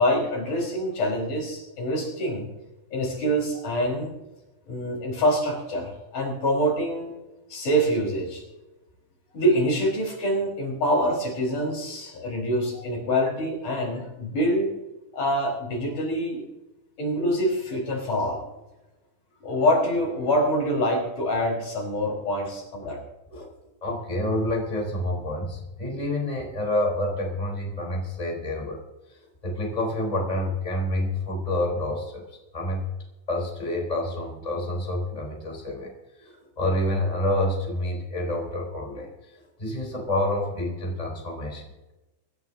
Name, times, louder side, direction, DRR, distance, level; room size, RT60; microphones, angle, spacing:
voice 1, 0.0-2.5 2.9-4.2 4.7-7.1 7.5-8.4 9.3-14.7 15.1-16.4 17.0-18.4 19.4-23.0, equal, 75° left, -2 dB, 5.9 m, -25 dB
voice 2, 23.8-28.8 29.1-32.8 33.3-35.9 36.2-41.9, left 1 dB, 10° left, -1 dB, 3.6 m, -28 dB
25.0 x 13.0 x 2.7 m, 1.0 s
omnidirectional pair, 3.6 m